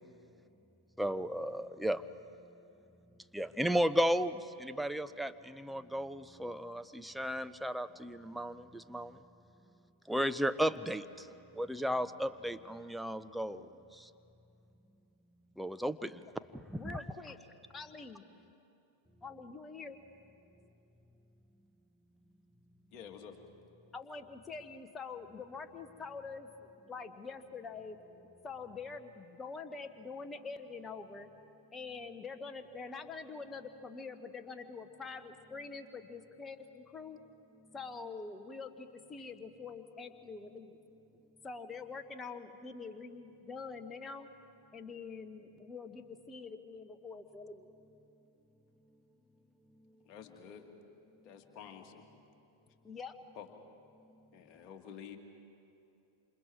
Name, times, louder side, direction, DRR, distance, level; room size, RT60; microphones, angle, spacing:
voice 1, 1.0-2.0 3.3-9.2 10.1-11.3 11.5-13.6 13.9-14.1 15.6-16.2 16.5-17.0, equal, ahead, 11 dB, 0.6 m, -34 dB
voice 2, 16.7-17.4 17.7-18.2 19.2-20.0 23.9-28.0 28.4-31.3 31.7-37.2 37.7-40.8 41.4-44.3 44.7-47.7 52.8-53.1, left 4 dB, 15° left, 8 dB, 1.3 m, -45 dB
voice 3, 22.9-23.3 50.1-50.6 51.2-52.0 53.4-53.5 54.3-55.2, left 8 dB, 35° left, 3 dB, 2.2 m, -49 dB
27.5 x 27.0 x 4.7 m, 2.7 s
figure-of-eight pair, 90°, 0 cm